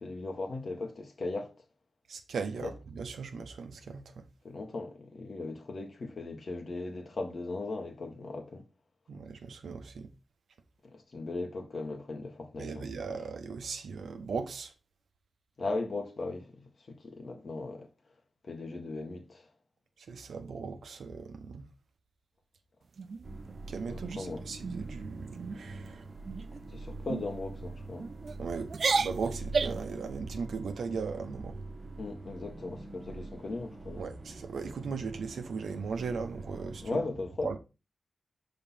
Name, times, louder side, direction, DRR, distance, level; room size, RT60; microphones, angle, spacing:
voice 1, 0.0-1.5 2.6-2.7 4.4-8.6 10.9-12.9 15.6-16.4 16.9-17.9 18.4-19.4 23.9-24.4 26.7-28.1 32.0-34.0 36.8-37.5, left 3 dB, 60° left, 1.5 m, -37 dB
voice 2, 2.1-4.2 9.1-10.1 12.6-14.7 20.0-21.6 23.7-26.1 28.4-28.7 29.0-31.6 34.0-37.1 37.4-37.6, right 5 dB, 80° right, 0.9 m, -38 dB
sound 1, 23.0-23.6 24.0-24.3 24.6-24.9 25.3-25.6 26.2-26.6 27.1-27.3 28.0-28.4 28.7-29.9, right 4 dB, 65° right, 0.4 m, -32 dB
sound 2, 23.2-37.0, right 2 dB, 45° right, 1.2 m, -44 dB
5.6 x 3.9 x 5.6 m
cardioid pair, 45°, 0 cm